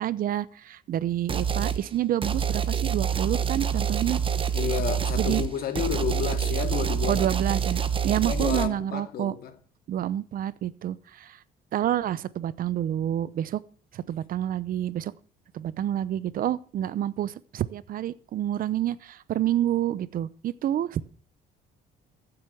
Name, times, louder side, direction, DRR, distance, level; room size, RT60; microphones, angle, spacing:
voice 1, 0.0-4.2 5.1-5.4 7.1-9.3 9.9-11.4 11.7-13.6 13.9-15.1 15.5-21.0, right 11 dB, 55° right, 0.8 m, -28 dB
sound 1, 1.3-1.8 2.2-8.7, right 7 dB, 30° right, 1.2 m, -26 dB
voice 2, 4.5-7.3 8.3-9.5, left 9 dB, 65° left, 2.3 m, -31 dB
15.0 x 8.0 x 7.1 m
cardioid pair, 110°, 17 cm